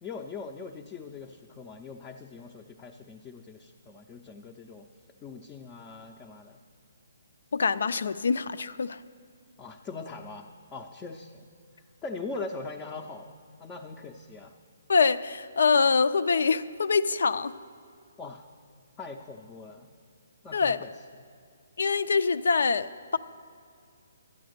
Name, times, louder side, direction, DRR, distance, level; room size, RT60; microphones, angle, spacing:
voice 1, 0.0-4.9 5.2-6.6 9.6-11.5 12.0-14.5 18.2-18.4 19.0-19.9 20.4-21.0, left 4 dB, 15° left, 1 dB, 0.5 m, -41 dB
voice 2, 7.5-9.0 14.9-17.5 20.5-20.8 21.8-23.2, left 5 dB, 75° left, 14 dB, 0.4 m, -24 dB
12.0 x 8.5 x 6.5 m, 2.3 s
hypercardioid pair, 155°, 0 cm